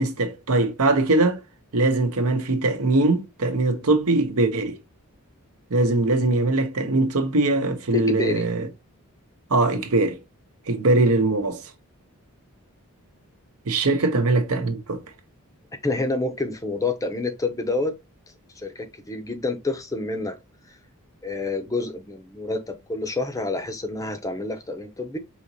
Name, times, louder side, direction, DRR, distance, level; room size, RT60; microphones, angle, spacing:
voice 1, 0.0-1.4 1.7-4.8 5.7-8.7 9.5-10.2 10.7-11.6 13.7-15.0, right 2 dB, 75° right, 0.9 m, -21 dB
voice 2, 7.9-8.5 15.8-17.9 18.6-20.4 20.7-20.8 21.2-25.2, left 2 dB, 15° left, 0.5 m, -28 dB
4.9 x 3.0 x 2.7 m
head